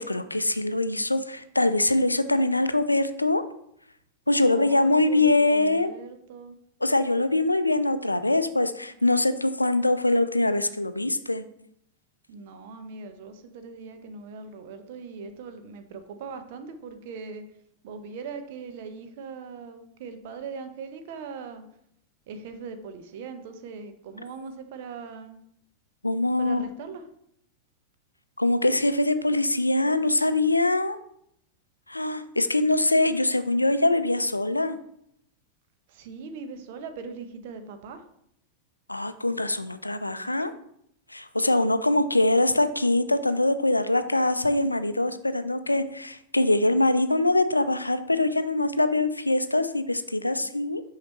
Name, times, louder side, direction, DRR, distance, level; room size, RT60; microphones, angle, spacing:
voice 1, 0.0-3.4 4.3-5.9 6.8-11.4 26.0-26.6 28.4-31.0 31.9-34.8 38.9-40.5 41.1-50.8, left 2 dB, 85° left, 12 dB, 0.4 m, -23 dB
voice 2, 4.4-6.6 12.3-17.4 17.8-21.6 22.3-25.4 26.4-27.1 35.9-38.1, right 5 dB, 50° right, 8 dB, 0.8 m, -40 dB
6.1 x 5.7 x 3.0 m, 0.72 s
figure-of-eight pair, 90°, 0 cm